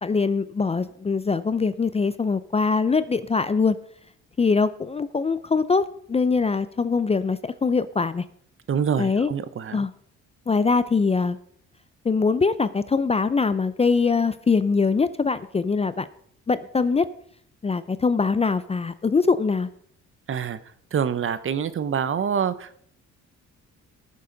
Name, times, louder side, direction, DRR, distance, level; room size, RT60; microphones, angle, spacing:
voice 1, 0.0-3.8 4.4-8.2 9.0-9.3 9.7-9.9 10.5-11.4 12.0-16.1 16.5-17.1 17.6-19.7, left 4 dB, 20° left, 14 dB, 0.4 m, -22 dB
voice 2, 8.7-9.9 20.3-20.6 20.9-22.8, right 7 dB, 45° right, 14 dB, 0.8 m, -26 dB
18.5 x 6.9 x 3.9 m, 0.66 s
cardioid pair, 90°, 30 cm